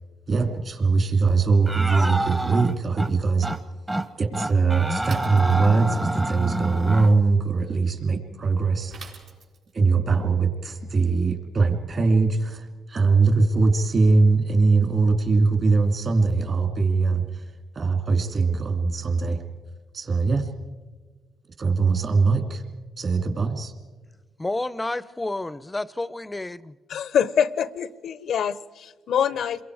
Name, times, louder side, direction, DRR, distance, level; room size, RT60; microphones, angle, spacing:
voice 1, 0.3-3.5 4.2-9.2 9.7-17.5 17.7-19.4 19.9-20.5 21.6-22.6 23.0-23.7, right 4 dB, 45° right, 2.6 m, -21 dB
sound 1, 1.7-3.1 3.4-3.6 3.9-4.1 4.3-7.1, right 1 dB, 15° right, 0.9 m, -28 dB
Bicycle / Mechanisms, 5.0-6.0 8.9-9.8, right 5 dB, 75° right, 4.4 m, -44 dB
voice 2, 24.4-26.7, left 2 dB, 15° left, 0.6 m, -30 dB
voice 3, 26.9-29.6, left 8 dB, 65° left, 0.6 m, -25 dB
28.0 x 22.5 x 4.8 m
cardioid pair, 90°, 0 cm